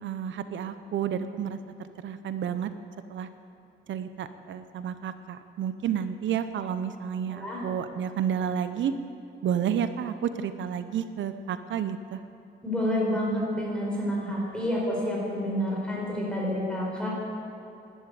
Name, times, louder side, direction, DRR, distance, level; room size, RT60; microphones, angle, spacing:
voice 1, 0.0-2.7 3.1-3.3 3.9-8.9 9.4-12.2, right 8 dB, 85° right, 11 dB, 0.7 m, -31 dB
voice 2, 7.3-7.6 12.6-17.1, equal, 5° left, -4 dB, 4.7 m, -29 dB
12.0 x 12.0 x 9.3 m, 2.8 s
wide cardioid pair, 150°, 19 cm